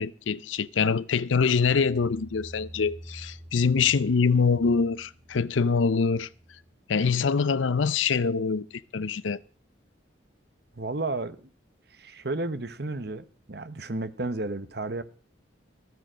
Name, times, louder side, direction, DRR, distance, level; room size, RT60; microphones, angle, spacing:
voice 1, 0.0-6.3 6.9-9.4, left 5 dB, 80° left, 0.6 m, -24 dB
sound 1, 1.5-8.4 8.7-9.1 9.5-9.6, equal, 35° right, 1.6 m, -49 dB
voice 2, 10.8-11.5 11.9-15.0, right 2 dB, 55° right, 1.0 m, -32 dB
14.0 x 9.4 x 6.2 m
head